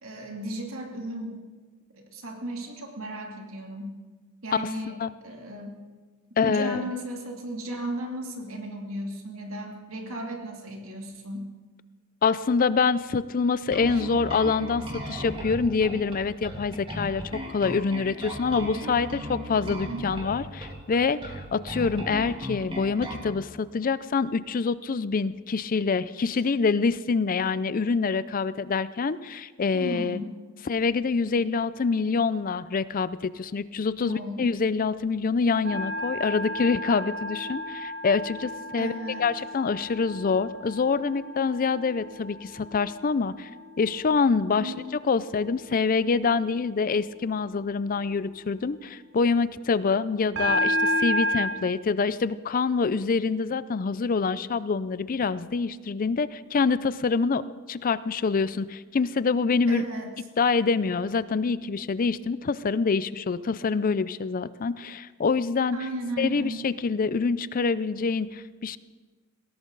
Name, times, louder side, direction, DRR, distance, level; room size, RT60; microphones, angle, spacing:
voice 1, 0.0-1.4 1.9-3.9 4.4-5.0 5.2-5.8 6.4-11.5 13.9-14.0 19.9-20.2 26.3-26.4 29.7-30.3 34.0-34.4 38.8-39.3 44.6-44.8 59.7-60.1 65.7-66.6, right 1 dB, 75° right, 1 dB, 2.7 m, -35 dB
voice 2, 6.4-6.9 12.2-30.2 30.7-38.9 39.2-43.5 43.8-44.7 45.0-59.9 60.4-65.8 66.2-68.8, left 4 dB, 40° left, 16 dB, 0.5 m, -26 dB
Bass guitar, 13.7-23.3, equal, 25° right, 2.8 m, -36 dB
sound 1, 35.7-43.9 44.4-44.8 50.4-51.5, equal, 60° right, 5.2 m, -31 dB
20.0 x 17.0 x 4.0 m, 1.4 s
head